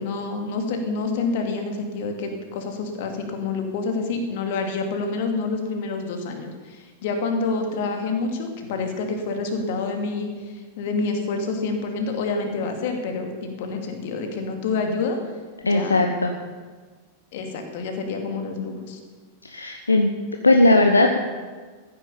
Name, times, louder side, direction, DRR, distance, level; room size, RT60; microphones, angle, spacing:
voice 1, 0.0-15.2 15.6-16.1 17.3-19.0, left 3 dB, 50° left, 4 dB, 2.5 m, -28 dB
voice 2, 15.6-16.3 19.4-20.1 20.4-21.2, left 2 dB, 80° left, 4 dB, 0.9 m, -18 dB
14.5 x 9.9 x 7.0 m, 1.4 s
figure-of-eight pair, 90°, 0 cm